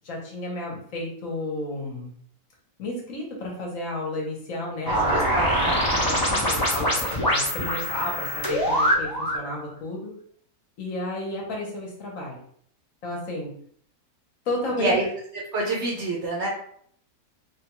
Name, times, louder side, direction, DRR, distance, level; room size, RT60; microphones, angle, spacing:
voice 1, 0.0-2.1 2.8-5.2 5.9-10.1 10.8-12.4 13.0-13.5 14.5-14.9, left 1 dB, 60° left, -2 dB, 1.2 m, -32 dB
sound 1, 4.9-9.5, equal, 30° left, 0.4 m, -24 dB
voice 2, 4.9-5.8 14.8-15.1 15.5-16.5, right 2 dB, 60° right, -2 dB, 0.8 m, -27 dB
3.4 x 2.3 x 2.9 m, 0.63 s
omnidirectional pair, 1.6 m